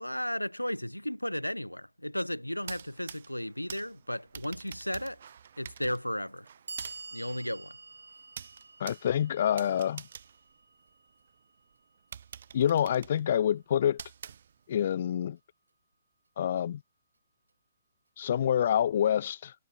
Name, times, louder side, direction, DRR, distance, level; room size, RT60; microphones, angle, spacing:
voice 1, 0.0-5.2 5.6-6.5 7.1-7.7, left 1 dB, 90° left, 0.8 m, -34 dB
sound 1, 2.5-11.3 11.7-11.8 12.1-14.9, right 8 dB, 55° right, 2.1 m, -48 dB
Clock, 4.7-4.8 5.7-5.8 6.4-12.4, right 3 dB, 75° right, 2.4 m, -49 dB
voice 2, 8.8-10.0 12.5-14.0 14.7-15.4 16.4-16.8 18.2-19.5, left 9 dB, 50° left, 0.4 m, -27 dB
figure-of-eight pair, 120°, 0 cm